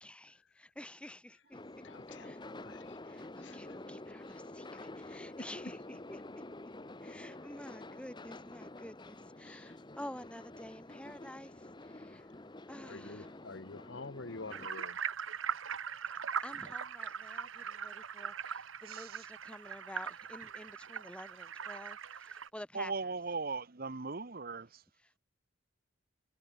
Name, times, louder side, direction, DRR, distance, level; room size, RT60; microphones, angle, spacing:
voice 1, 0.0-2.4 3.0-5.8 6.1-6.4 7.0-12.3 12.7-13.3 16.4-23.1 25.0-25.2, left 1 dB, 5° left, 2.3 m, -50 dB
sound 1, 1.5-14.7, left 2 dB, 20° left, 0.9 m, -48 dB
voice 2, 1.8-3.0 3.4-3.8 5.1-5.5 7.0-7.1 9.4-9.8 12.8-15.1, left 3 dB, 60° left, 1.2 m, -48 dB
sound 2, 14.5-22.5, right 7 dB, 75° right, 1.1 m, -40 dB
voice 3, 18.9-19.2 22.7-24.8, right 4 dB, 45° right, 1.0 m, -38 dB
head